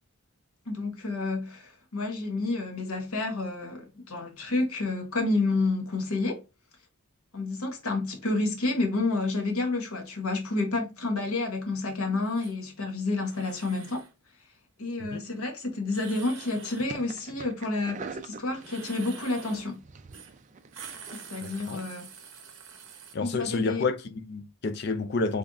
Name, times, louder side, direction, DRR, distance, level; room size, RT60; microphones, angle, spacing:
voice 1, 0.7-6.4 7.3-14.1 14.8-19.8 21.1-22.1 23.2-23.8, left 2 dB, 75° left, 1.1 m, -30 dB
sound 1, 12.2-12.5 13.2-14.1 15.9-16.9 18.6-19.7 20.1-20.3 20.6-23.1, right 6 dB, 60° right, 0.8 m, -46 dB
sound 2, 16.7-21.8, right 4 dB, 35° right, 0.3 m, -44 dB
voice 2, 21.4-21.8 23.1-25.4, left 3 dB, 45° left, 0.4 m, -30 dB
3.9 x 3.4 x 2.3 m
head